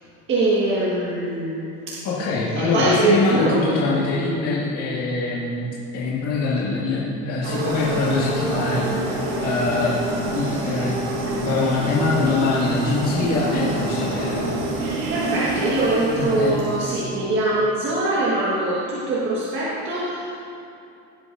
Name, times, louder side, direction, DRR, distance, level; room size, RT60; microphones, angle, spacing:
voice 1, 0.3-2.0 2.5-3.7 15.1-20.4, right 2 dB, 40° right, -7 dB, 1.6 m, -22 dB
voice 2, 2.0-10.0 10.3-11.0 11.5-14.4 16.1-16.6, left 3 dB, 55° left, -7 dB, 2.1 m, -23 dB
sound 1, 7.4-17.2, right 2 dB, 85° right, 2.5 m, -27 dB
17.0 x 8.1 x 2.7 m, 2.7 s
supercardioid pair, 120°, 30 cm